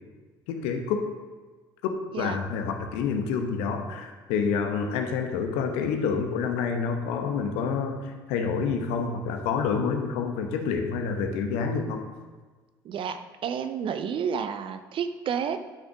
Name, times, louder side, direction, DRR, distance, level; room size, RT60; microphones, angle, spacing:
voice 1, 0.5-1.0 1.8-12.0, left 5 dB, 70° left, 5 dB, 1.0 m, -28 dB
voice 2, 12.8-15.6, right 7 dB, 50° right, 9 dB, 0.7 m, -30 dB
11.0 x 6.3 x 3.6 m, 1.4 s
hypercardioid pair, 55°, 12 cm